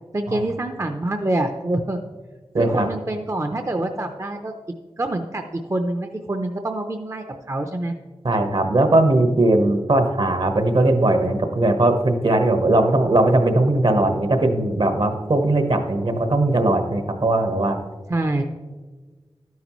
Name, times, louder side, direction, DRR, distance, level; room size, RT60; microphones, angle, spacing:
voice 1, 0.1-2.0 2.6-4.5 5.0-5.4 5.7-7.9 18.1-18.4, right 1 dB, 30° right, 5 dB, 0.6 m, -26 dB
voice 2, 2.5-2.9 8.2-17.8, right 2 dB, 60° right, 6 dB, 1.1 m, -19 dB
12.0 x 9.4 x 3.1 m, 1.4 s
wide cardioid pair, 55°, 10 cm